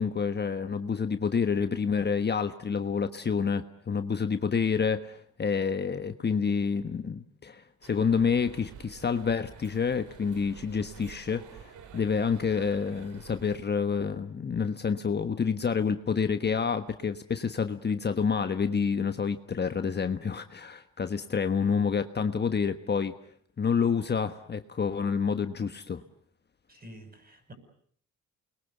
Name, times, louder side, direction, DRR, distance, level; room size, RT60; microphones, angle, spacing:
voice 1, 0.0-23.1 23.6-26.0, left 6 dB, 35° left, 8 dB, 1.4 m, -28 dB
sound 1, 7.8-13.6, right 8 dB, 80° right, 2.5 m, -49 dB
voice 2, 26.7-27.5, equal, 30° right, 8 dB, 7.9 m, -48 dB
29.0 x 22.0 x 8.2 m, 0.64 s
cardioid pair, 90°, 30 cm